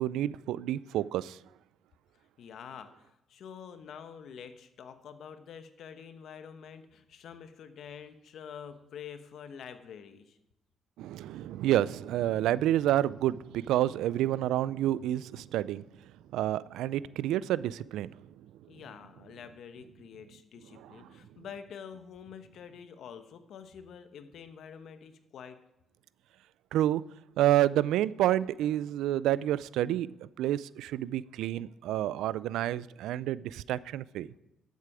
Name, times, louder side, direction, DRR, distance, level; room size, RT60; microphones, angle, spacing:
voice 1, 0.0-1.4 11.0-15.8 16.3-18.1 20.8-20.9 26.7-27.0 27.4-34.3, right 13 dB, 90° right, 19 dB, 0.3 m, -29 dB
voice 2, 2.4-10.4 18.7-25.6, left 7 dB, 70° left, 10 dB, 1.0 m, -47 dB
12.0 x 8.3 x 4.8 m, 0.96 s
cardioid pair, 90°, 0 cm